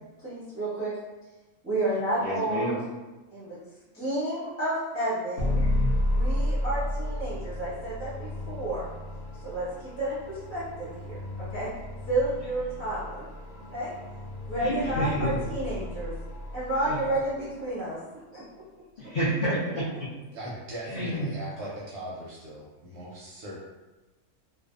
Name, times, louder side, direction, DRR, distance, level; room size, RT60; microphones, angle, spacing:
voice 1, 0.2-0.9 1.6-2.8 3.3-3.6 3.9-5.6 6.1-8.9 9.4-9.7 10.0-11.7 12.1-13.3 13.7-13.9 14.5-16.1 16.5-18.0 18.3-18.4, right 1 dB, 15° right, -12 dB, 0.5 m, -31 dB
voice 2, 2.2-2.8 14.6-15.3 16.9-17.0 19.0-20.1 20.9-21.3, equal, 65° left, -9 dB, 0.5 m, -29 dB
sound 1, 5.4-17.5, left 1 dB, 85° left, 1.1 m, -32 dB
voice 3, 20.3-23.6, right 1 dB, 65° right, -5 dB, 0.7 m, -39 dB
2.6 x 2.1 x 2.4 m, 1.1 s
omnidirectional pair, 1.5 m